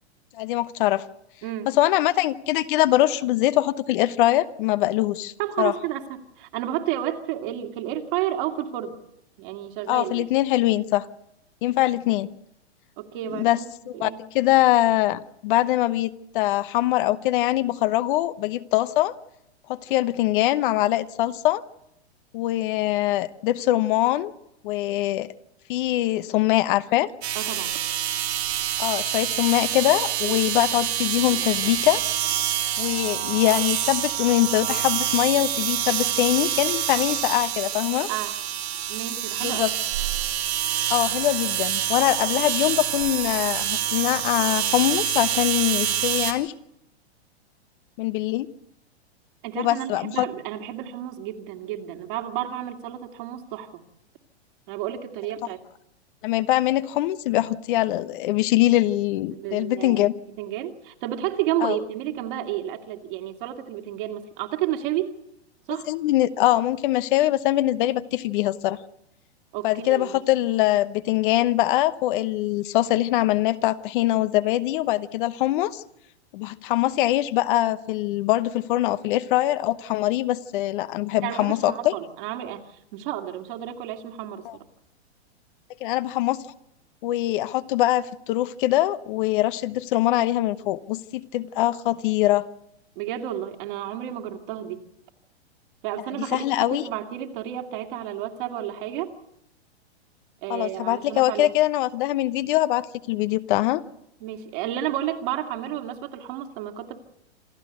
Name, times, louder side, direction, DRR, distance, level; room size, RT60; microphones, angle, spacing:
voice 1, 0.3-1.0 1.7-5.7 9.9-11.1 11.6-12.3 13.3-13.6 13.9-19.1 19.7-21.6 22.3-24.3 24.6-25.3 25.7-27.1 28.8-32.0 32.8-38.1 39.4-39.7 40.9-46.5 48.0-48.5 49.6-50.3 56.2-60.1 61.6-61.8 65.9-68.8 69.6-75.8 76.3-81.9 84.4-84.6 85.8-86.4 87.0-92.4 96.3-96.8 100.5-103.8, left 15 dB, 50° left, 14 dB, 0.9 m, -23 dB
voice 2, 5.4-9.0 9.4-10.3 13.0-13.6 13.9-14.2 27.3-27.8 30.2-30.4 38.1-38.4 38.9-39.6 49.4-53.8 54.7-55.6 59.3-65.1 65.7-65.9 69.5-70.2 81.2-84.4 93.0-94.8 95.8-99.1 100.4-101.6 104.2-107.0, right 12 dB, 50° right, 5 dB, 2.5 m, -31 dB
sound 1, 27.2-46.3, right 11 dB, 70° right, 3.7 m, -26 dB
27.5 x 12.5 x 8.1 m, 0.81 s
hypercardioid pair, 120°, 33 cm